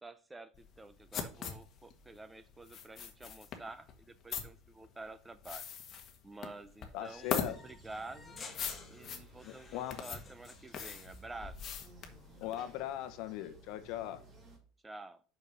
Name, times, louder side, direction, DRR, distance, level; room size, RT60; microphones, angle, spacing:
voice 1, 0.0-5.7 6.2-8.4 8.9-11.6 14.8-15.2, right 2 dB, 10° right, 0.6 m, -49 dB
sound 1, 0.5-12.8, left 7 dB, 40° left, 1.4 m, -41 dB
voice 2, 6.9-7.6 9.4-10.0 12.4-14.2, left 12 dB, 65° left, 1.0 m, -39 dB
sound 2, 7.0-11.1, left 5 dB, 25° left, 1.3 m, -53 dB
sound 3, 7.2-14.6, right 2 dB, 30° right, 2.5 m, -58 dB
5.6 x 5.4 x 6.3 m
supercardioid pair, 125°, 0 cm